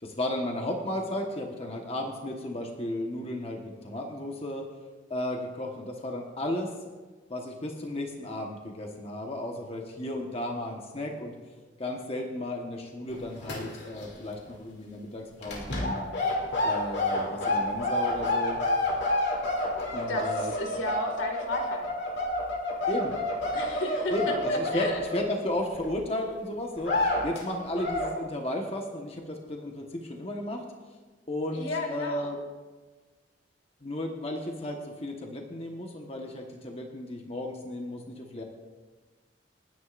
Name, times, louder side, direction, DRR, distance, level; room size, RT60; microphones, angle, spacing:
voice 1, 0.0-4.6 5.1-6.7 7.3-11.3 11.8-16.0 16.6-18.6 19.9-20.5 22.9-23.2 24.1-30.6 31.3-32.4 33.8-38.4, left 1 dB, 30° left, 1 dB, 1.2 m, -34 dB
sound 1, 13.1-14.1 14.3-14.6 15.4-25.9 26.3-26.4 26.8-27.4 27.7-28.1, left 1 dB, 65° left, 2.6 m, -29 dB
voice 2, 20.1-21.9 23.5-25.0 31.5-32.3, left 1 dB, 80° left, 3 dB, 2.1 m, -33 dB
28.5 x 9.9 x 2.5 m, 1.3 s
head